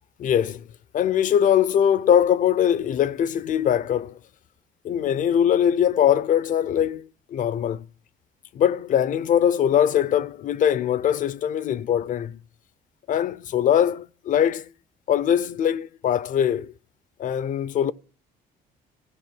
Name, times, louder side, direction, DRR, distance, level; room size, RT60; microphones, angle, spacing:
voice 1, 0.2-0.6 0.9-4.2 4.8-7.8 8.5-12.4 13.1-14.7 15.1-16.7 17.2-17.9, left 9 dB, 50° left, 0.5 m, -22 dB
15.0 x 5.5 x 7.5 m
cardioid pair, 110°, 17 cm